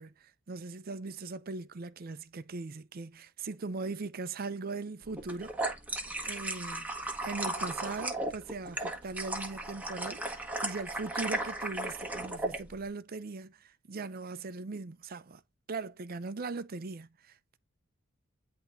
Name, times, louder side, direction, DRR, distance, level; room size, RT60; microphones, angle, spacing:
voice 1, 0.0-5.6 6.2-15.4 15.7-17.6, right 3 dB, 45° right, 0.5 m, -40 dB
sound 1, 5.2-12.6, right 2 dB, 10° right, 1.4 m, -35 dB
10.0 x 3.5 x 2.7 m
head